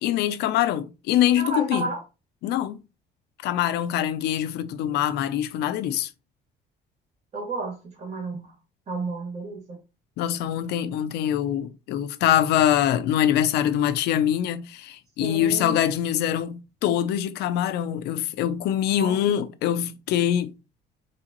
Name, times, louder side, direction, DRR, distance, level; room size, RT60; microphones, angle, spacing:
voice 1, 0.0-1.8 2.4-2.8 3.4-6.1 10.2-20.5, left 11 dB, 80° left, 0.6 m, -24 dB
voice 2, 1.4-2.0 7.3-8.5 8.9-9.8 15.2-15.8 18.9-19.2, right 3 dB, 40° right, 2.3 m, -32 dB
4.1 x 3.8 x 2.9 m
cardioid pair, 110°, 17 cm